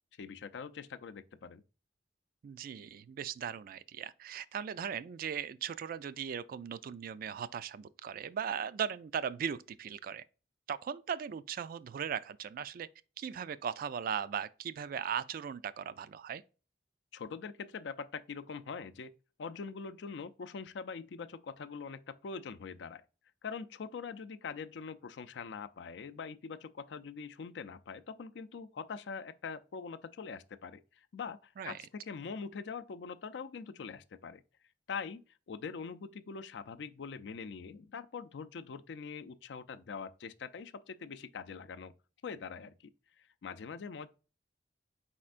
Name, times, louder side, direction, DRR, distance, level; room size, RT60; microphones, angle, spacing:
voice 1, 0.2-1.6 17.1-19.1 19.4-23.0 23.4-34.4 34.9-35.2 35.5-41.9 42.2-42.9 43.2-44.1, left 5 dB, 75° left, 0.4 m, -43 dB
voice 2, 2.4-10.2 10.7-12.9 13.2-16.4 31.6-31.8, right 7 dB, 55° right, 0.3 m, -38 dB
4.3 x 4.3 x 2.4 m
head